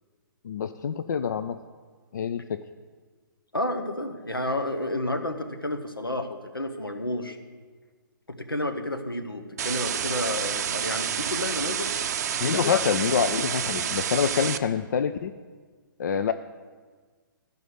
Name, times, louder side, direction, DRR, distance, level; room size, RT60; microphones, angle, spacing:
voice 1, 0.4-1.6 2.1-2.6 12.4-15.3 16.0-16.3, left 7 dB, 55° left, 10 dB, 0.4 m, -26 dB
voice 2, 3.5-7.4 8.3-11.9 12.4-13.1, left 1 dB, 85° left, 6 dB, 1.2 m, -31 dB
sound 1, 9.6-14.6, right 8 dB, 45° right, 0.5 m, -29 dB
12.0 x 5.3 x 8.0 m, 1.5 s
figure-of-eight pair, 125°, 11 cm